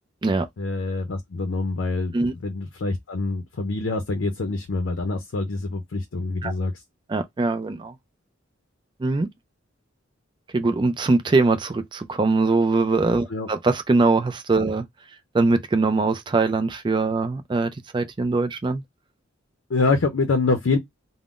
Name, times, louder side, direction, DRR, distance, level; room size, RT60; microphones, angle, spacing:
voice 1, 0.6-6.8 13.3-13.5 19.7-20.8, left 3 dB, 70° left, 0.5 m, -25 dB
voice 2, 7.1-7.9 9.0-9.3 10.5-14.9 15.3-18.8, right 3 dB, 25° right, 0.4 m, -22 dB
3.6 x 2.0 x 2.4 m
head